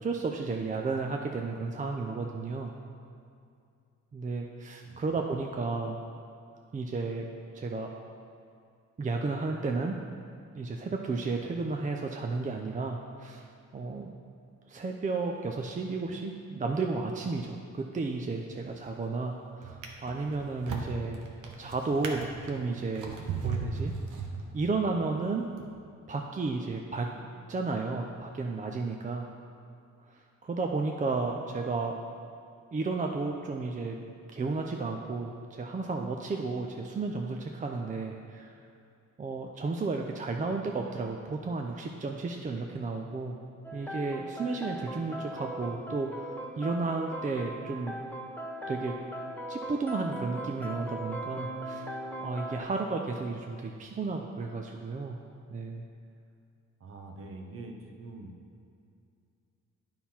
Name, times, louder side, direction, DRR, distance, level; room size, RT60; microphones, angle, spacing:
voice 1, 0.0-2.7 4.1-6.0 6.7-7.3 7.5-7.9 9.0-9.9 10.5-14.1 14.7-21.2 21.6-23.9 24.5-25.5 26.1-29.3 30.1-31.9 32.7-34.0 34.3-38.6 39.2-43.4 43.7-48.0 48.7-48.9 49.5-51.9 52.2-55.2 55.5-55.8, right 3 dB, 25° right, 2 dB, 0.5 m, -33 dB
Drawer open or close, 18.6-19.1 19.6-24.8 25.5-25.7, right 5 dB, 85° right, 1.0 m, -37 dB
sound 1, 43.6-52.7, right 1 dB, 5° left, 0.8 m, -39 dB
voice 2, 56.8-58.3, right 2 dB, 45° right, 3 dB, 1.0 m, -44 dB
9.2 x 5.7 x 4.3 m, 2.4 s
cardioid pair, 90°, 30 cm